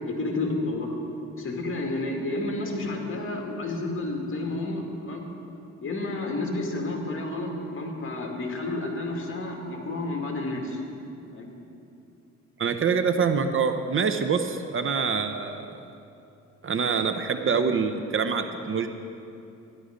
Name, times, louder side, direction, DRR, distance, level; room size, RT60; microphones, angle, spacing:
voice 1, 0.0-1.0 1.4-5.3 5.8-10.8 11.3-11.5, left 2 dB, 45° left, 1 dB, 2.2 m, -30 dB
voice 2, 12.6-15.7 16.6-18.9, right 5 dB, 45° right, 7 dB, 0.8 m, -25 dB
12.5 x 11.0 x 5.2 m, 2.7 s
cardioid pair, 90°, 30 cm